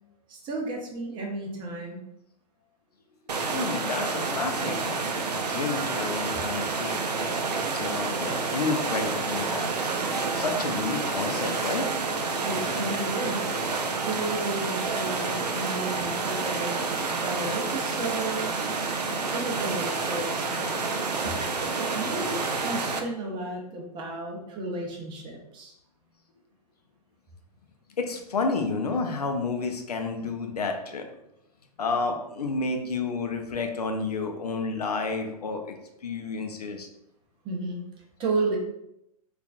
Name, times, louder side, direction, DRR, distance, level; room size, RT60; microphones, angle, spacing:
voice 1, 0.3-2.0 12.4-13.6 14.0-16.9 17.2-18.5 19.3-25.7 37.4-37.8 38.2-38.6, right 2 dB, 25° right, 0 dB, 0.6 m, -33 dB
sound 1, 3.3-23.0, right 4 dB, 80° right, 0.5 m, -29 dB
voice 2, 3.5-5.0 5.3-9.7 10.3-11.9 28.0-31.0 31.8-35.7 36.0-36.9, left 4 dB, 70° left, 4 dB, 0.5 m, -30 dB
3.9 x 2.4 x 2.3 m, 0.82 s
figure-of-eight pair, 105°, 20 cm